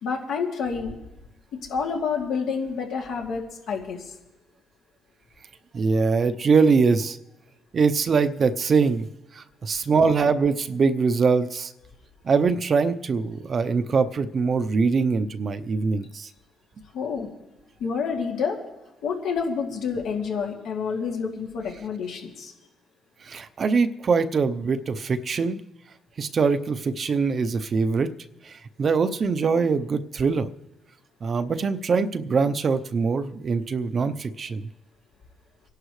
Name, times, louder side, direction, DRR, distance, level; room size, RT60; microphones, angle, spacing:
voice 1, 0.0-0.9 1.5-4.1 16.9-17.3 17.8-18.6 19.0-22.5, left 5 dB, 80° left, -1 dB, 2.7 m, -28 dB
voice 2, 5.7-7.2 7.7-9.1 9.3-11.7 12.2-16.3 23.2-25.6 26.2-28.1 28.4-30.5 31.2-34.7, right 5 dB, 45° right, 10 dB, 0.7 m, -23 dB
25.0 x 11.5 x 3.3 m, 1.0 s
cardioid pair, 90°, 0 cm